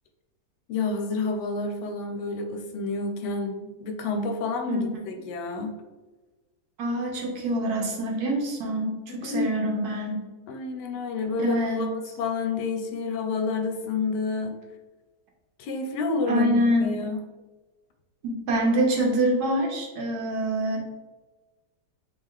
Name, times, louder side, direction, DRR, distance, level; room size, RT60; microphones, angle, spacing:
voice 1, 0.7-5.7 9.1-9.5 10.5-14.6 15.6-17.2, left 3 dB, 75° left, 4 dB, 1.1 m, -29 dB
voice 2, 6.8-10.2 11.4-11.9 16.3-16.9 18.2-20.8, right 1 dB, 65° right, 0 dB, 1.2 m, -25 dB
3.3 x 3.0 x 3.6 m, 1.2 s
omnidirectional pair, 1.9 m